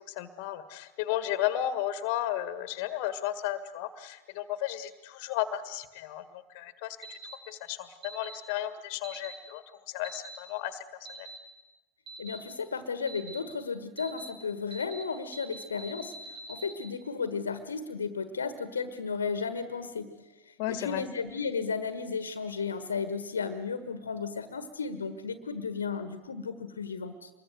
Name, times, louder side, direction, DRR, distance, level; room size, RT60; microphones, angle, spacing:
voice 1, 0.0-7.2 7.5-10.8 11.2-11.3 20.6-21.0, left 12 dB, 45° left, 12 dB, 1.8 m, -34 dB
sound 1, 7.0-7.3 8.0-8.3 9.0-9.4 10.0-10.4 11.1-11.4 12.1-12.4 13.1-13.4 14.0-14.3 14.7-15.0 15.3-16.7, right 2 dB, 20° right, 5.4 m, -44 dB
voice 2, 12.2-20.1 20.5-27.3, left 5 dB, 70° left, 11 dB, 1.6 m, -34 dB
25.5 x 22.0 x 8.0 m, 1.1 s
figure-of-eight pair, 90°, 0 cm